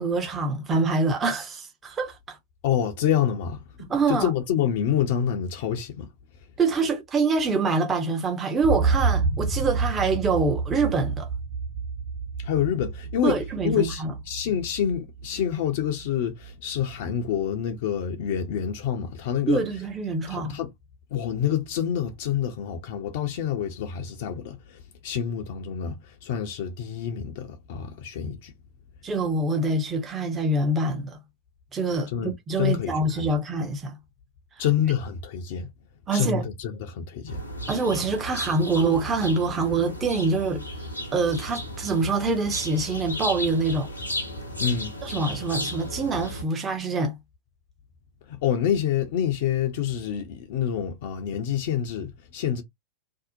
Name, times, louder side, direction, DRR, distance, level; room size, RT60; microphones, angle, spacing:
voice 1, 0.0-2.4 3.8-4.3 6.6-11.3 13.2-14.1 19.5-20.6 29.0-31.2 31.7-32.1 32.5-33.9 36.1-36.4 37.7-40.7 41.1-43.9 45.0-47.1, right 3 dB, 20° right, 0.6 m, -25 dB
voice 2, 2.6-3.6 4.1-6.1 12.4-13.4 13.6-19.6 20.3-20.7 21.1-28.5 32.1-33.3 34.6-35.7 36.1-37.4 44.6-44.9 48.3-52.6, left 9 dB, 50° left, 0.5 m, -27 dB
sound 1, 8.6-16.5 16.9-17.0, right 4 dB, 50° right, 1.1 m, -29 dB
sound 2, 37.3-46.4, left 1 dB, 85° left, 0.8 m, -34 dB
2.6 x 2.0 x 2.5 m
figure-of-eight pair, 90°, 0 cm